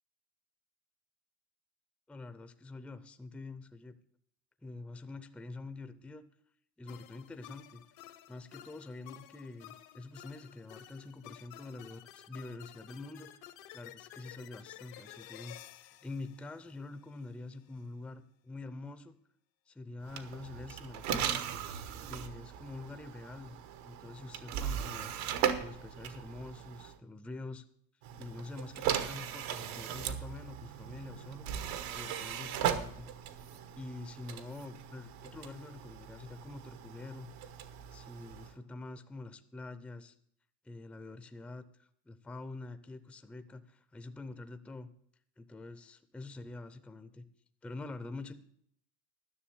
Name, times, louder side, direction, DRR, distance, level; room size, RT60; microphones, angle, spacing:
voice 1, 2.1-4.0 4.6-6.2 6.8-7.8 8.3-13.3 13.7-19.1 19.7-21.4 22.1-23.6 23.8-25.1 25.6-27.6 28.2-31.5 31.9-33.1 33.8-37.3 37.9-40.1 40.6-44.9 45.4-47.3 47.6-48.3, left 2 dB, 5° left, 10 dB, 0.4 m, -46 dB
sound 1, 6.9-17.3, left 13 dB, 70° left, 1.1 m, -53 dB
sound 2, 20.0-27.0 28.0-38.6, right 9 dB, 85° right, 1.3 m, -38 dB
11.5 x 6.3 x 8.6 m, 0.68 s
cardioid pair, 130°, 45 cm